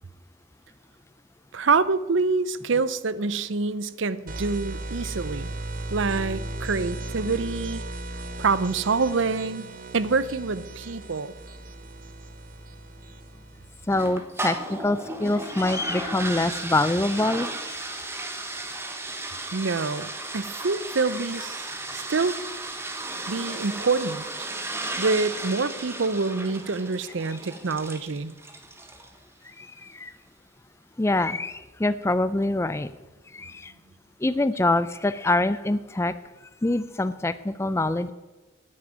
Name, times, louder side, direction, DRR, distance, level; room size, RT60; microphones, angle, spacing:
voice 1, 1.5-5.5 5.9-7.8 8.4-9.7 9.9-11.3 19.5-22.4 23.3-24.3 25.0-28.3, right 4 dB, 70° right, 16 dB, 0.7 m, -26 dB
sound 1, 4.3-14.0, right 1 dB, 45° right, 0.9 m, -36 dB
voice 2, 13.9-17.9 29.4-30.1 31.0-32.9 33.3-33.7 34.2-36.1 36.6-38.1, left 2 dB, 15° left, 14 dB, 0.4 m, -25 dB
sound 2, 13.9-29.2, right 2 dB, 10° right, 1.1 m, -35 dB
9.5 x 9.0 x 9.5 m, 1.2 s
head